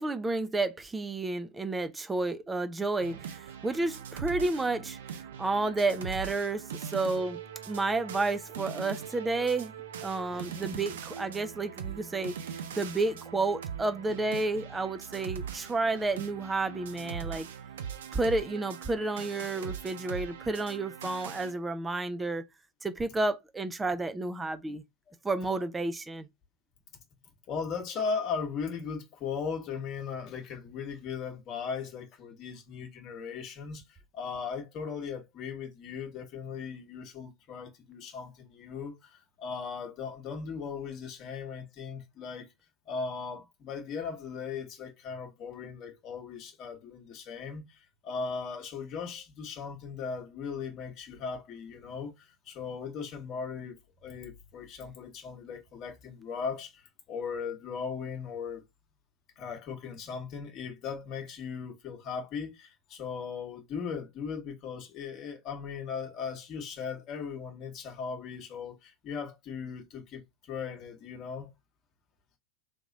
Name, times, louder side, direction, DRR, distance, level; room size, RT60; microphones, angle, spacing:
voice 1, 0.0-5.0 5.4-7.4 7.7-9.7 10.0-17.5 18.1-22.4 22.8-24.8 25.2-26.3, right 3 dB, 10° right, 0.6 m, -31 dB
sound 1, 3.0-21.5, right 8 dB, 60° right, 0.6 m, -41 dB
voice 2, 27.5-33.8 34.1-42.5 42.9-53.8 54.0-58.6 59.4-70.2 70.5-71.5, left 5 dB, 35° left, 1.3 m, -38 dB
3.4 x 3.0 x 3.9 m
figure-of-eight pair, 90°, 0 cm